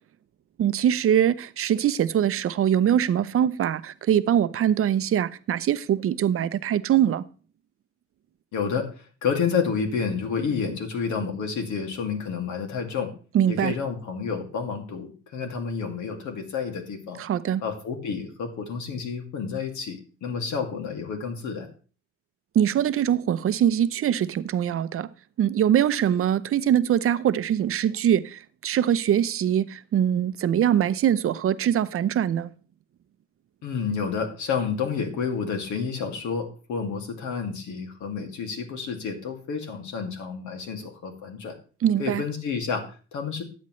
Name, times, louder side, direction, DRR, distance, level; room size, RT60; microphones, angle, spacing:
voice 1, 0.6-7.2 13.3-13.7 17.2-17.6 22.5-25.1 25.4-32.5 41.8-42.2, right 10 dB, 45° right, 0.7 m, -23 dB
voice 2, 8.5-13.1 13.5-17.2 17.6-21.7 33.6-41.6 42.0-43.4, left 6 dB, 70° left, 2.4 m, -30 dB
13.0 x 8.2 x 3.2 m
cardioid pair, 90°, 31 cm